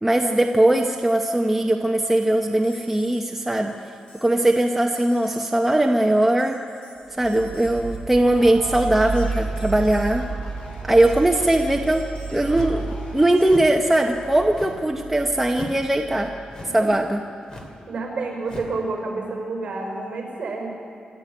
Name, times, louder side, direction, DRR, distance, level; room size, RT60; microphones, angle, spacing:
voice 1, 0.0-3.7 4.2-6.6 7.2-10.2 10.8-12.0 12.3-16.3 16.7-17.2, right 1 dB, 5° right, 1 dB, 0.8 m, -20 dB
sound 1, 2.4-13.5, left 1 dB, 50° left, 4.8 m, -46 dB
sound 2, 7.2-17.1, right 4 dB, 85° right, 1.3 m, -33 dB
sound 3, 12.5-12.9 13.4-13.8 14.5-14.9 15.5-15.9 16.5-16.9 17.5-17.8 18.4-18.8, equal, 30° left, 2.5 m, -37 dB
voice 2, 17.9-20.7, right 3 dB, 45° right, 1 dB, 5.7 m, -29 dB
26.0 x 13.5 x 8.8 m, 2.4 s
wide cardioid pair, 170°, 3 cm